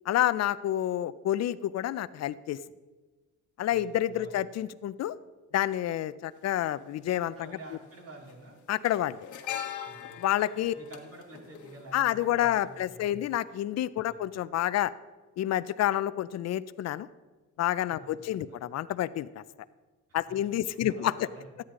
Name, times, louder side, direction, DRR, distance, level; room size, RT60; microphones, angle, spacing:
voice 1, 0.1-2.6 3.6-5.2 5.5-7.6 8.7-9.2 10.2-10.7 11.9-14.9 15.4-17.1 17.6-19.4 20.1-21.1, left 12 dB, 60° left, 16 dB, 0.5 m, -29 dB
voice 2, 3.7-4.4 7.3-8.6 9.8-10.2 10.8-13.3 14.1-14.3 17.9-18.2 18.5-18.6 20.7-21.5, right 2 dB, 50° right, 1 dB, 2.6 m, -49 dB
sound 1, 6.3-6.4 7.7-7.9 8.2-12.5 12.8-12.9, left 9 dB, 80° left, 1.3 m, -41 dB
13.0 x 9.6 x 3.7 m, 1.3 s
cardioid pair, 90°, 30 cm